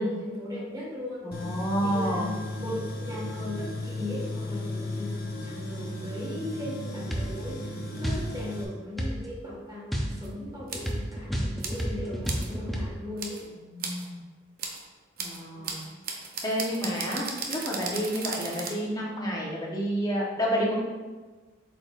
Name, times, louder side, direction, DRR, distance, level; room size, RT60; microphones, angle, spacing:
voice 1, 0.0-13.5 15.6-16.0, left 1 dB, 20° right, -5 dB, 1.8 m, -38 dB
voice 2, 1.2-2.3 13.7-14.2 15.2-15.8 16.4-20.7, equal, 20° left, -4 dB, 1.2 m, -29 dB
Tools, 1.3-8.6, left 1 dB, 50° left, 0.9 m, -35 dB
sound 1, 7.1-7.3 8.0-8.3 9.0-9.2 9.9-12.8, equal, ahead, 0.7 m, -30 dB
sound 2, 10.2-10.3 10.7-10.9 11.6-11.8 12.2-12.5 13.2-13.4 13.8-14.1 14.6-14.8 15.2-18.7, right 5 dB, 50° right, 0.8 m, -36 dB
7.8 x 5.0 x 2.6 m, 1.3 s
head